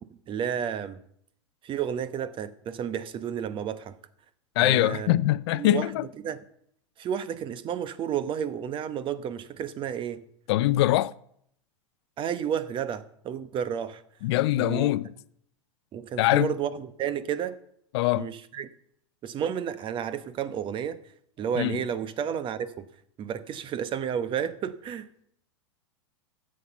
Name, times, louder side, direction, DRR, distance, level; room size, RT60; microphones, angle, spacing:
voice 1, 0.3-1.0 1.6-3.9 4.6-5.2 5.5-5.9 6.2-6.4 7.0-10.2 12.2-14.0 14.6-14.9 15.9-17.6 18.2-18.7 19.2-21.0 21.4-22.9 23.2-25.1, right 8 dB, 35° right, 1.0 m, -31 dB
voice 2, 4.6-6.1 10.5-11.1 14.2-15.1 16.2-16.5 17.9-18.3 21.6-21.8, left 16 dB, 60° left, 0.5 m, -23 dB
13.0 x 7.7 x 5.7 m
hypercardioid pair, 100°, 16 cm